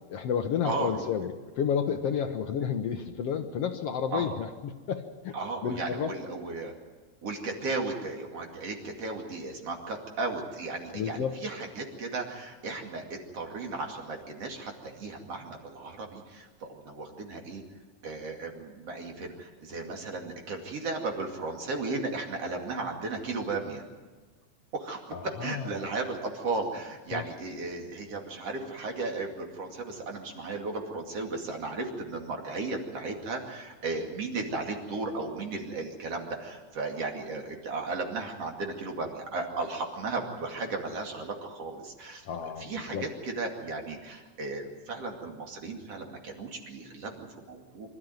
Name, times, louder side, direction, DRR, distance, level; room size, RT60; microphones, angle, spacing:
voice 1, 0.1-5.3 5.6-6.1 10.9-11.3 25.1-25.7 27.1-27.2 42.2-43.1, left 7 dB, 65° left, 6 dB, 1.6 m, -31 dB
voice 2, 0.6-1.0 4.1-4.3 5.3-6.7 7.2-17.6 18.0-23.8 24.7-47.9, right 3 dB, 50° right, 2 dB, 3.3 m, -35 dB
25.0 x 13.5 x 9.3 m, 1.3 s
omnidirectional pair, 3.8 m